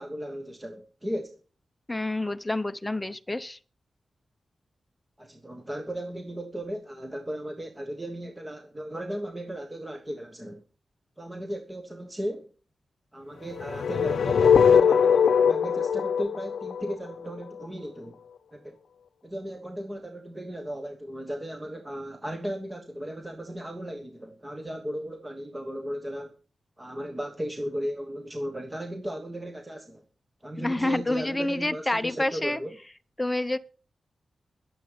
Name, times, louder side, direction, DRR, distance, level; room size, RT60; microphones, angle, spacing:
voice 1, 0.0-1.4 5.2-10.6 11.2-12.5 13.1-18.2 18.5-18.8 19.2-26.3 26.8-30.0 30.4-32.8, equal, 15° right, 1.3 m, -36 dB
voice 2, 1.9-3.6 30.6-32.6 33.2-33.6, left 2 dB, 10° left, 0.8 m, -28 dB
sound 1, 13.6-17.7, left 7 dB, 90° left, 0.6 m, -21 dB
21.0 x 7.7 x 5.1 m
wide cardioid pair, 155°, 0 cm